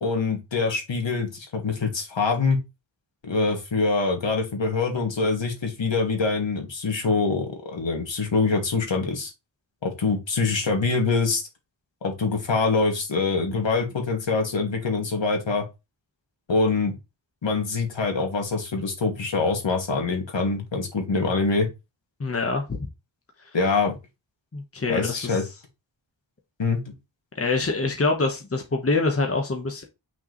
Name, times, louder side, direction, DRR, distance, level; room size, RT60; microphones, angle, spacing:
voice 1, 0.0-2.6 3.2-9.3 9.8-11.4 12.0-15.6 16.5-16.9 17.4-21.7 23.5-24.0 24.9-25.4 26.6-26.8, left 4 dB, 70° left, 2.5 m, -24 dB
voice 2, 22.2-22.8 24.5-25.4 27.3-29.8, left 3 dB, 30° left, 1.4 m, -25 dB
6.0 x 5.1 x 3.2 m
wide cardioid pair, 105°, 46 cm